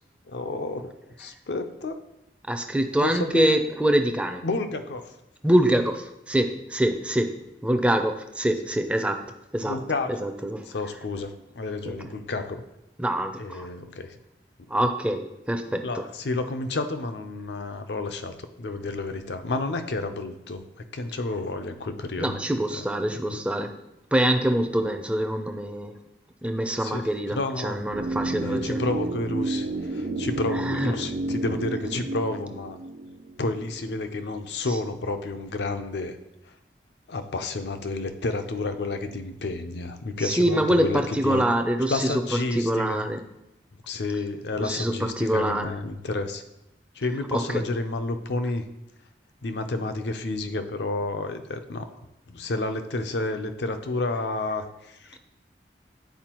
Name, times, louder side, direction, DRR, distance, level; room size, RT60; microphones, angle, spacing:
voice 1, 0.3-2.0 3.0-3.7 4.4-5.2 7.7-7.8 9.6-10.3 10.7-12.6 13.4-14.2 14.6-14.7 15.8-20.6 20.9-22.4 22.7-23.4 26.8-27.8 28.4-32.8 33.4-36.2 37.1-41.4 41.9-43.1 43.9-46.4 46.9-48.6 49.4-51.9 52.3-55.2, left 2 dB, 80° left, 8 dB, 0.6 m, -30 dB
voice 2, 2.5-4.4 5.4-7.4 7.6-9.2 9.5-9.8 10.2-10.6 11.9-12.0 13.0-13.7 14.7-15.9 22.2-23.8 24.1-25.9 26.4-27.4 27.6-28.8 30.6-30.9 40.2-42.1 42.6-43.2 44.6-45.7 47.3-47.6, right 1 dB, 5° right, 5 dB, 0.4 m, -25 dB
sound 1, 27.9-33.9 34.2-34.3, right 2 dB, 65° right, 0.5 m, -31 dB
9.3 x 4.4 x 2.9 m, 0.89 s
head